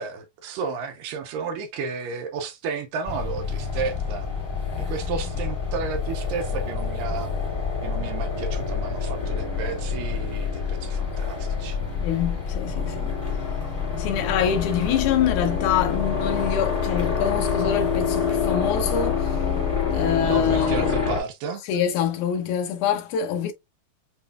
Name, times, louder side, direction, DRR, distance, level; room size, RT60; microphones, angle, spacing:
voice 1, 0.0-4.3 4.8-7.3 7.8-12.0 12.8-13.0 20.2-21.6, right 5 dB, 80° right, 2.2 m, -32 dB
sound 1, 3.1-21.2, left 6 dB, 25° left, 1.3 m, -27 dB
voice 2, 12.0-13.2 14.0-19.5 19.9-20.9 21.7-23.5, left 9 dB, 75° left, 1.9 m, -25 dB
7.0 x 3.1 x 2.2 m
omnidirectional pair, 4.1 m